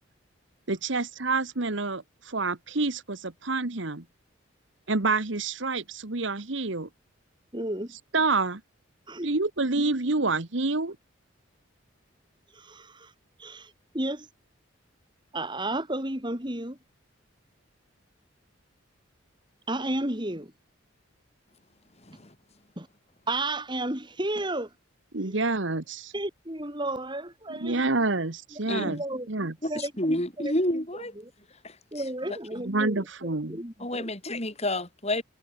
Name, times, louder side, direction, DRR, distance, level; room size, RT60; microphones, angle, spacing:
voice 1, 0.7-4.0 4.9-6.9 8.1-8.6 9.2-10.9 25.1-26.1 27.6-29.0 29.3-29.5 32.6-33.6, right 3 dB, 60° right, 1.4 m, -28 dB
voice 2, 7.5-7.9 9.1-9.3 9.8-10.0 12.5-13.1 13.4-14.3 15.3-16.8 19.7-20.5 22.8-22.9 23.3-24.7 25.2-25.4 26.1-27.9 28.5-31.3 31.9-34.1, right 1 dB, 20° right, 4.2 m, -33 dB
voice 3, 29.6-31.1 31.6-31.7 32.3-32.4 33.8-35.2, left 1 dB, 30° left, 6.7 m, -29 dB
head